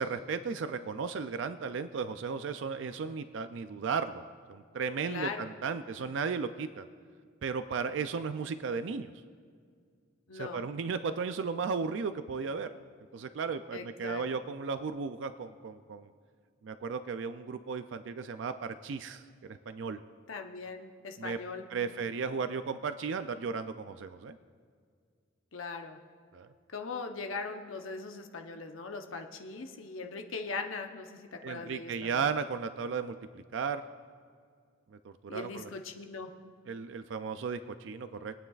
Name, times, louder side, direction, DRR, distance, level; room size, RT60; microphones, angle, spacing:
voice 1, 0.0-4.2 4.5-6.9 7.4-9.1 10.3-12.7 13.1-16.1 16.6-20.0 21.2-21.4 21.7-24.4 26.3-26.5 31.4-33.8 34.9-35.7 36.7-38.3, right 5 dB, 65° right, 10 dB, 0.4 m, -35 dB
voice 2, 5.1-5.5 10.3-10.6 13.7-14.2 20.3-22.0 25.5-26.0 26.7-32.3 35.3-36.3, left 4 dB, 85° left, 4 dB, 0.9 m, -40 dB
23.5 x 9.2 x 2.4 m, 2.1 s
head